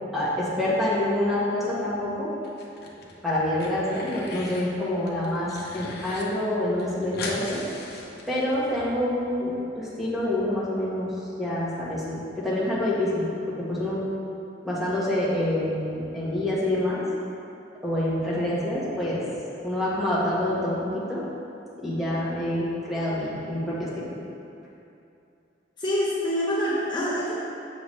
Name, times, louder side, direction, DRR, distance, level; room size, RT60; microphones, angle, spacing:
voice 1, 0.1-2.3 3.2-7.6 8.3-11.1 11.4-13.3 13.6-14.0 14.6-17.0 17.8-19.2 19.6-21.3 21.8-24.1, left 1 dB, ahead, -8 dB, 1.5 m, -27 dB
sound 1, 2.4-3.1 3.4-4.7 5.1-6.2 6.5-6.6 6.8-8.7, left 3 dB, 60° left, 1.0 m, -38 dB
voice 2, 25.8-27.3, equal, 25° left, -9 dB, 0.9 m, -26 dB
7.2 x 6.9 x 3.2 m, 2.7 s
head